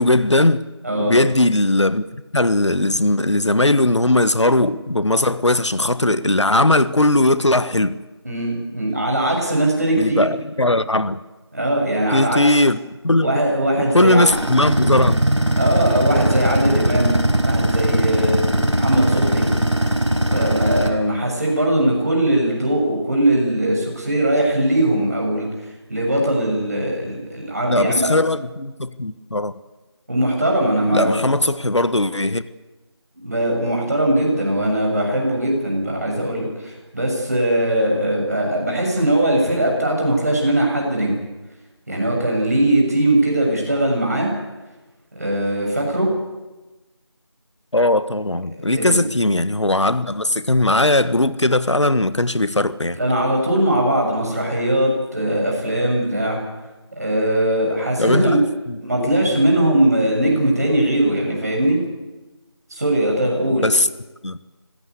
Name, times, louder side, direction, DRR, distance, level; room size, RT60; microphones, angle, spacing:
voice 1, 0.0-0.6 1.0-2.0 2.3-8.0 10.0-11.2 12.1-13.3 13.9-15.2 27.7-29.5 30.9-32.4 47.7-53.0 58.0-59.1 59.4-59.5 63.6-63.9 64.2-64.4, left 1 dB, 80° left, 1.4 m, -18 dB
voice 2, 0.8-1.2 8.2-10.3 11.5-12.5 13.2-14.3 15.6-17.2 17.4-18.4 18.7-19.5 20.3-28.1 30.1-31.2 33.2-41.2 41.9-44.3 45.1-46.1 48.6-49.0 53.0-56.4 56.9-58.4 58.8-61.8 62.7-63.6, right 1 dB, 35° right, 6.9 m, -20 dB
sound 1, 14.3-20.9, right 1 dB, 85° right, 4.4 m, -19 dB
26.0 x 16.5 x 8.3 m
figure-of-eight pair, 175°, 15 cm